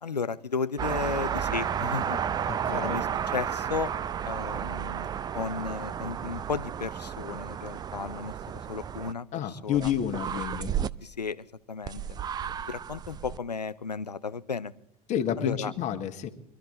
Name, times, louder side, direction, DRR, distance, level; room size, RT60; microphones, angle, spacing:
voice 1, 0.0-3.9 4.2-5.1 5.3-8.3 8.7-9.9 11.0-12.0 12.7-14.7 15.4-15.7, left 5 dB, 85° left, 17 dB, 0.6 m, -34 dB
sound 1, 0.8-9.1 9.7-10.9 11.9-13.4, right 8 dB, 20° right, 0.5 m, -32 dB
voice 2, 2.5-3.0 9.3-10.7 15.1-16.3, left 9 dB, 35° left, 6 dB, 1.5 m, -30 dB
24.0 x 13.0 x 3.8 m, 0.77 s
figure-of-eight pair, 75°, 20 cm